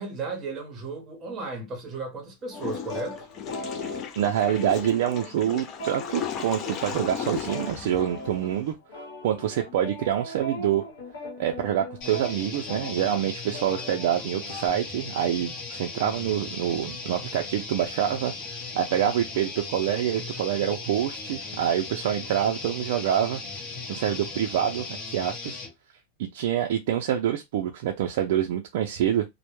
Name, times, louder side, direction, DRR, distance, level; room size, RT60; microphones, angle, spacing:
voice 1, 0.0-3.3, right 3 dB, 20° right, 0.8 m, -35 dB
sound 1, 2.5-14.7, left 1 dB, 75° left, 0.9 m, -40 dB
Water / Toilet flush, 2.5-8.7, left 8 dB, 25° left, 0.3 m, -36 dB
voice 2, 4.2-10.8 11.4-18.3 18.7-23.4 23.9-25.6 26.2-29.3, right 10 dB, 55° right, 0.3 m, -26 dB
sound 2, 12.0-25.7, left 3 dB, 45° left, 0.8 m, -37 dB
2.1 x 2.0 x 2.9 m
supercardioid pair, 165°, 0 cm